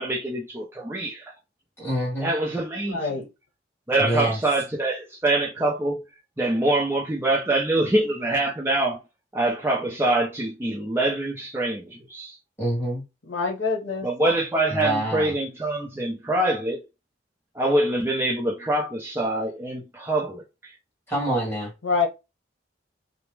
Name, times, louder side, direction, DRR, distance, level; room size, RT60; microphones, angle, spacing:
voice 1, 0.0-1.3 2.2-3.0 3.9-6.0 6.4-9.0 9.3-12.4 14.0-16.8 17.5-20.4, right 2 dB, 10° right, 0.5 m, -24 dB
voice 2, 1.8-2.3 4.0-4.4 12.6-13.0 14.7-15.3 21.1-21.7, right 1 dB, 10° left, 1.6 m, -26 dB
voice 3, 2.9-3.3 13.3-14.1 21.8-22.1, left 4 dB, 85° left, 0.8 m, -25 dB
2.9 x 2.1 x 3.2 m
head